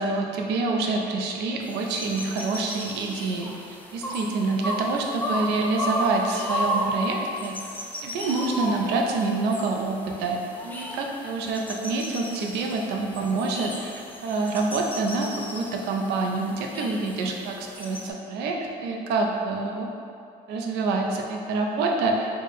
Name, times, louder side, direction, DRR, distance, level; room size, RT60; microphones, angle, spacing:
voice 1, 0.0-7.6 8.0-13.9 14.2-19.9 20.5-22.3, right 3 dB, 85° right, 1 dB, 0.5 m, -27 dB
sound 1, 1.6-18.1, equal, 10° left, 0.4 m, -34 dB
4.1 x 2.1 x 3.4 m, 2.5 s
cardioid pair, 110°, 17 cm